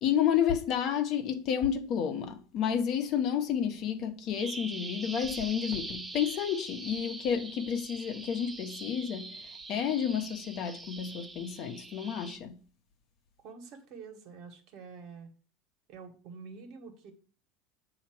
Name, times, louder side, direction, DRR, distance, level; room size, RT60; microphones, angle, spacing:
voice 1, 0.0-12.6, left 8 dB, 50° left, 0.9 m, -31 dB
Bird vocalization bird call bird song, 4.4-12.4, right 3 dB, 15° right, 0.6 m, -43 dB
voice 2, 13.4-15.3 15.9-17.1, right 5 dB, 60° right, 1.5 m, -47 dB
7.2 x 2.9 x 6.0 m
supercardioid pair, 120°, 0 cm